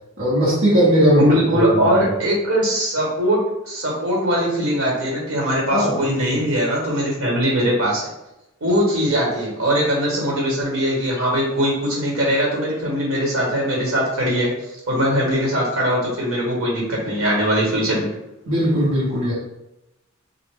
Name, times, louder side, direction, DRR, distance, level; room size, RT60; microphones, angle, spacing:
voice 1, 0.2-2.1 5.7-6.5 18.5-19.3, equal, 65° right, -8 dB, 1.1 m, -19 dB
voice 2, 1.2-8.0 8.6-14.5 14.9-18.1, equal, 85° right, -3 dB, 1.4 m, -21 dB
3.3 x 2.4 x 3.5 m, 0.90 s
head